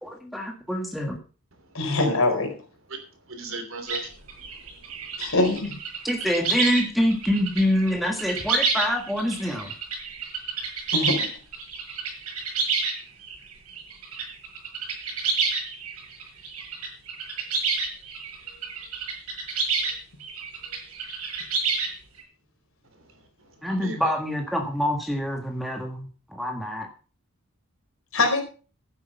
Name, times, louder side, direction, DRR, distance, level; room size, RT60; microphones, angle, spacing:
voice 1, 0.0-1.2 6.0-9.7 23.6-26.9, equal, ahead, 3 dB, 1.6 m, -26 dB
voice 2, 1.7-2.5 5.2-5.8 10.9-11.3 28.1-28.4, left 2 dB, 65° left, 3 dB, 4.5 m, -23 dB
voice 3, 3.3-5.1 22.9-23.1 23.7-24.1, right 2 dB, 60° right, 7 dB, 3.1 m, -38 dB
sound 1, 3.9-6.8 7.1-19.9 20.2-22.2, right 4 dB, 80° right, 7.5 m, -29 dB
11.5 x 9.8 x 5.6 m, 0.37 s
head